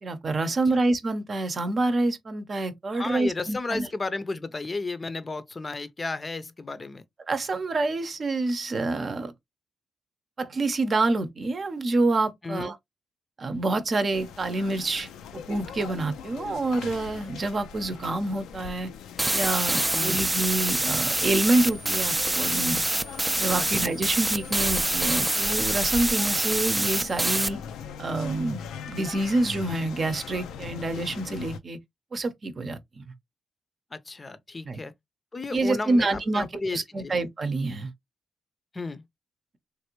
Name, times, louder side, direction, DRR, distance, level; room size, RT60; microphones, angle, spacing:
voice 1, 0.0-3.9 7.3-9.3 10.4-12.8 13.4-15.1 15.5-18.9 19.3-22.8 23.4-27.6 28.0-31.8 32.1-33.0 34.6-34.8 35.5-37.9, right 2 dB, 45° right, 0.7 m, -27 dB
voice 2, 2.9-7.0 12.4-12.7 19.9-20.2 23.6-23.9 33.9-34.9 35.3-37.1 38.7-39.0, left 3 dB, 30° left, 0.6 m, -33 dB
sound 1, 14.1-31.6, left 7 dB, 85° left, 0.4 m, -40 dB
sound 2, 19.2-27.5, right 1 dB, 15° right, 0.4 m, -26 dB
3.3 x 2.5 x 2.9 m
cardioid pair, 65°, 0 cm